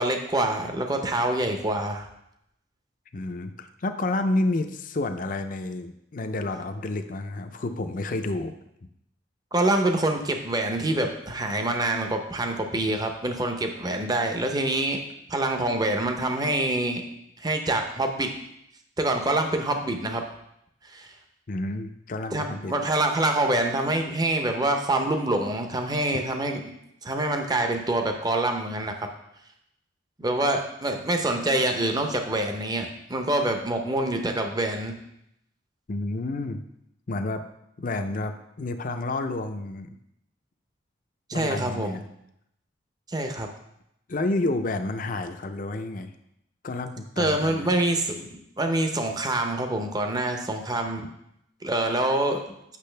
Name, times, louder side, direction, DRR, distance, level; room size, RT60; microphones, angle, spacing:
voice 1, 0.0-2.1 9.5-15.0 15.3-17.0 17.4-18.3 19.0-20.2 20.9-21.1 22.3-26.6 27.0-28.9 30.2-34.9 41.3-42.0 43.1-43.5 47.2-51.0 51.6-52.4, right 1 dB, 20° right, 5 dB, 0.7 m, -26 dB
voice 2, 3.1-8.5 21.5-22.7 35.9-36.6 37.1-37.4 37.8-40.0 41.3-42.0 44.1-46.1 46.6-47.7, left 2 dB, 45° left, 7 dB, 0.5 m, -30 dB
8.4 x 6.2 x 3.3 m, 0.79 s
head